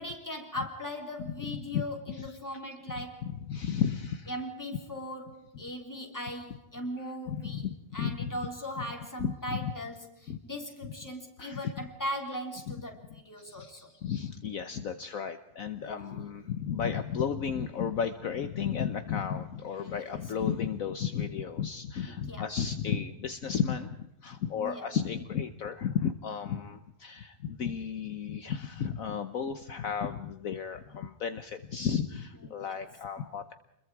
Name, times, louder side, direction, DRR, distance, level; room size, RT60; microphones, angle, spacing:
voice 1, 0.0-3.2 4.3-7.7 7.9-13.9 16.0-16.2 20.0-20.1 22.0-22.4 24.6-24.9 32.6-32.8, equal, 10° left, 2 dB, 3.4 m, -39 dB
voice 2, 1.2-2.4 3.0-3.1 3.3-4.3 7.3-8.3 8.8-8.9 9.2-9.7 10.3-10.4 10.8-10.9 11.4-11.7 12.7-12.8 13.4-33.5, left 7 dB, 60° left, 9 dB, 1.4 m, -33 dB
28.5 x 22.0 x 4.8 m, 0.87 s
omnidirectional pair, 1.7 m